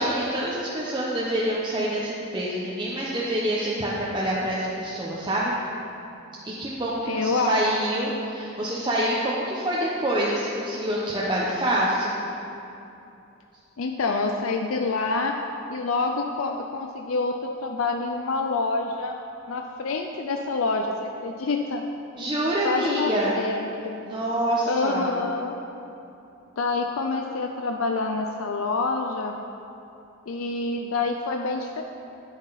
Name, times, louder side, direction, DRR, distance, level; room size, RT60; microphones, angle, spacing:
voice 1, 0.0-5.5 6.4-12.2 22.2-23.4 24.0-25.1, right 1 dB, 20° right, -6 dB, 0.9 m, -26 dB
voice 2, 7.0-7.6 7.9-8.0 13.8-15.3 15.7-19.1 19.5-21.8 22.6-24.0 24.7-25.6 26.6-29.4 30.3-31.8, left 3 dB, 85° left, 3 dB, 0.5 m, -27 dB
9.9 x 9.6 x 4.1 m, 2.8 s
head